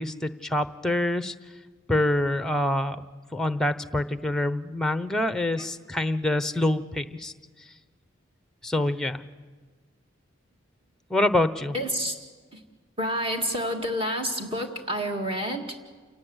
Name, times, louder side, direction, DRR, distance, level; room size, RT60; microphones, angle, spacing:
voice 1, 0.0-1.3 1.9-3.0 3.3-7.3 8.6-9.2 11.1-11.7, left 1 dB, 5° left, 12 dB, 0.8 m, -26 dB
voice 2, 11.7-12.2 12.5-12.6 13.0-15.8, equal, 30° right, 3 dB, 2.1 m, -29 dB
28.5 x 18.5 x 8.0 m, 1.4 s
head